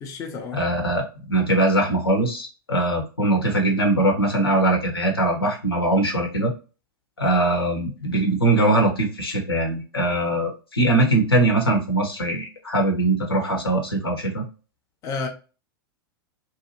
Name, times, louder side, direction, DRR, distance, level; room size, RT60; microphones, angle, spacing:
voice 1, 0.0-0.6 15.0-15.3, left 4 dB, 25° left, 0.5 m, -30 dB
voice 2, 0.5-6.5 7.2-14.4, right 2 dB, 80° left, 0.9 m, -21 dB
2.7 x 2.4 x 2.6 m
figure-of-eight pair, 95°, 12 cm